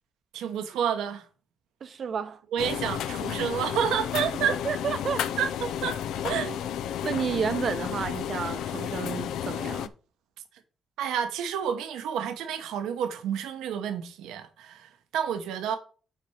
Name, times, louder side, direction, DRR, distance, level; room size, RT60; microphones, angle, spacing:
voice 1, 0.3-1.2 2.5-4.6 5.4-6.0 6.2-6.5 11.0-15.8, right 8 dB, 85° right, 1.0 m, -29 dB
voice 2, 1.8-2.4 4.5-5.3 6.3-6.6 7.0-9.9, right 6 dB, 55° right, 0.7 m, -31 dB
sound 1, 2.6-9.9, left 10 dB, 85° left, 0.5 m, -32 dB
5.8 x 4.5 x 6.3 m
cardioid pair, 90°, 0 cm